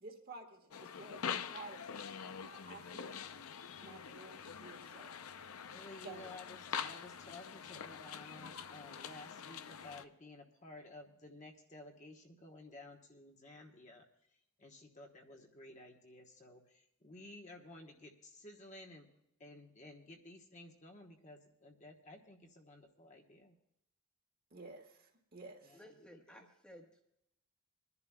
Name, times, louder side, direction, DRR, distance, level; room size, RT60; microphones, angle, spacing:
voice 1, 0.0-2.0 2.4-3.2 3.8-5.2 6.0-6.3 24.5-25.8, right 3 dB, 45° right, 3 dB, 1.6 m, -52 dB
sound 1, 0.7-10.0, left 7 dB, 85° left, 0.6 m, -45 dB
voice 2, 5.7-14.0 14.6-19.1 19.4-23.6 25.6-26.5, left 2 dB, 35° left, 2 dB, 1.1 m, -54 dB
voice 3, 25.7-27.0, equal, 5° left, 1 dB, 1.2 m, -57 dB
26.5 x 11.0 x 2.3 m, 0.78 s
head